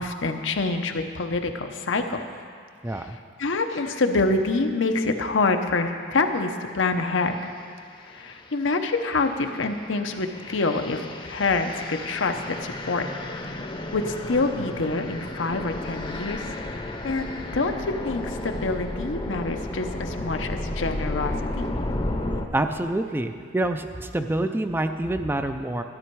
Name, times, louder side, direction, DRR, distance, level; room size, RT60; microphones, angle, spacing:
voice 1, 0.0-2.2 2.9-7.5 8.0-11.0 11.3-13.7 13.9-16.5 17.0-17.7 18.0-21.7, left 3 dB, 80° left, 6 dB, 0.8 m, -26 dB
voice 2, 2.8-3.2 22.5-25.8, right 1 dB, 10° right, 7 dB, 0.4 m, -27 dB
sound 1, 7.2-7.5 8.0-22.5, left 1 dB, 25° left, 0.7 m, -33 dB
12.5 x 11.0 x 4.6 m, 2.2 s
head